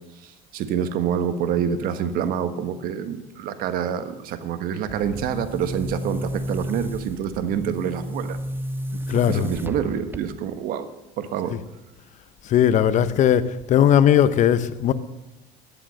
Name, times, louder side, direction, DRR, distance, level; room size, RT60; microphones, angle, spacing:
voice 1, 0.2-8.4 9.1-10.9 11.2-11.6, right 8 dB, 65° right, 1.4 m, -27 dB
Boom, 4.8-10.6, equal, 15° right, 0.8 m, -32 dB
voice 2, 9.1-9.5 12.4-14.9, left 10 dB, 50° left, 0.9 m, -18 dB
12.5 x 11.5 x 6.5 m
supercardioid pair, 105°, 16 cm